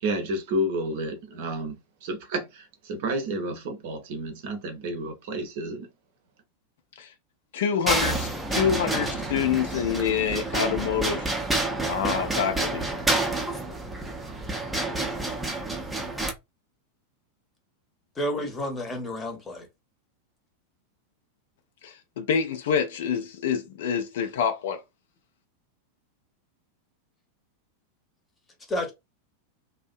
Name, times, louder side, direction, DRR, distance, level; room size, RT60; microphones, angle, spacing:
voice 1, 0.0-5.9, right 1 dB, 50° right, 0.6 m, -31 dB
voice 2, 7.5-11.3 11.9-12.8 21.8-24.8, left 7 dB, 55° left, 0.4 m, -27 dB
sound 1, 7.9-16.3, right 2 dB, 5° right, 0.5 m, -28 dB
voice 3, 18.1-19.7 28.7-28.9, equal, 15° left, 0.8 m, -30 dB
2.5 x 2.1 x 2.4 m
figure-of-eight pair, 90°, 0 cm